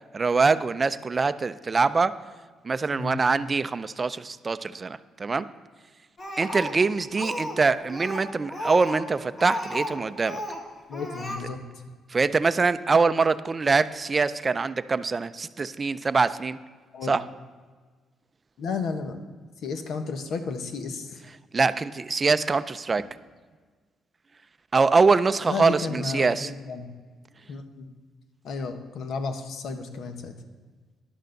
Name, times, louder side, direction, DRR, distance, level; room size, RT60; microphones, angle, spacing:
voice 1, 0.1-2.2 2.6-5.4 6.4-10.4 12.1-16.6 17.1-17.2 21.5-23.1 24.7-26.5, right 4 dB, 30° right, 13 dB, 0.4 m, -24 dB
Speech, 6.2-7.6 7.9-10.0 10.2-10.6 10.9-11.4, left 1 dB, 35° left, 2.2 m, -33 dB
voice 2, 10.9-11.6 16.9-17.2 18.6-19.2 19.6-21.2 25.5-26.9 27.5-27.9 28.4-30.3, left 4 dB, 70° left, 7 dB, 1.1 m, -32 dB
11.0 x 6.6 x 6.5 m, 1.5 s
cardioid pair, 90°, 0 cm